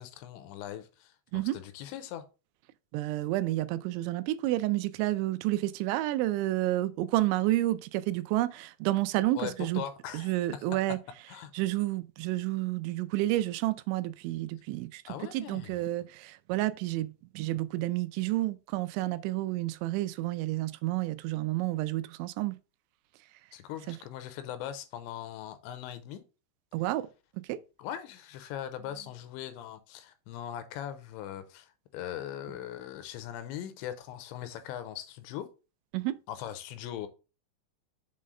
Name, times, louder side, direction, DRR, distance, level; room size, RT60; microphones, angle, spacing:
voice 1, 0.0-2.2 9.3-10.7 11.3-11.5 15.1-15.8 23.5-26.2 27.8-35.5 36.3-37.1, left 11 dB, 85° left, 3.0 m, -40 dB
voice 2, 2.9-9.8 10.1-11.0 11.5-15.0 15.3-22.6 23.9-24.0 26.7-27.1 27.5-27.6 35.9-36.2, right 16 dB, 85° right, 2.8 m, -30 dB
7.5 x 4.0 x 5.1 m
omnidirectional pair, 5.4 m